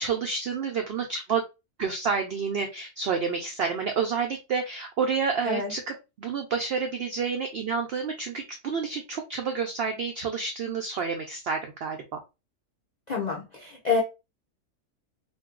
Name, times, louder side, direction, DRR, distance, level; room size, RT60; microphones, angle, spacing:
voice 1, 0.0-1.4 1.8-12.2, right 5 dB, 80° right, 0.5 m, -29 dB
voice 2, 13.1-14.0, left 5 dB, 60° left, 0.4 m, -27 dB
2.6 x 2.2 x 3.6 m
omnidirectional pair, 1.6 m